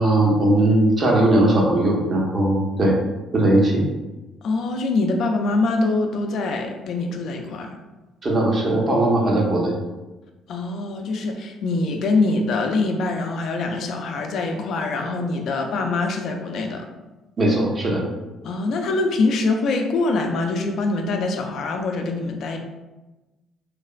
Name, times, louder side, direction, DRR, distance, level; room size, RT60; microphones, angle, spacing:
voice 1, 0.0-2.9 3.3-3.8 8.2-9.8 17.4-18.0, right 1 dB, 35° right, -2 dB, 0.7 m, -19 dB
voice 2, 4.4-7.8 10.5-16.9 18.4-22.6, left 3 dB, 65° left, 4 dB, 0.4 m, -24 dB
3.2 x 2.0 x 2.4 m, 1.1 s
cardioid pair, 100°, 0 cm